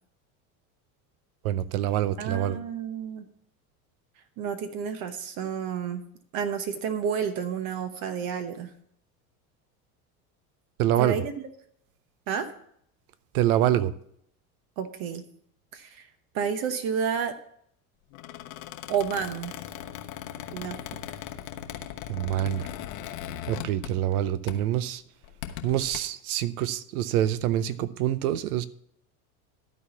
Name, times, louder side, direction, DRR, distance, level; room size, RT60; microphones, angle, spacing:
voice 1, 1.4-2.6 10.8-11.2 13.3-13.9 22.1-22.6 23.5-25.0 25.6-28.6, right 12 dB, 80° right, 16 dB, 0.8 m, -26 dB
voice 2, 2.2-3.3 4.4-6.0 6.3-8.7 11.0-11.3 12.3-12.5 14.8-15.2 15.7-16.1 16.3-17.4 18.9-19.6 20.5-20.8, right 7 dB, 55° right, 9 dB, 1.0 m, -30 dB
Squeak, 18.1-24.2 24.5-24.7 25.2-26.0, left 11 dB, 75° left, 1.1 m, -39 dB
12.5 x 4.2 x 6.9 m, 0.69 s
supercardioid pair, 100°, 44 cm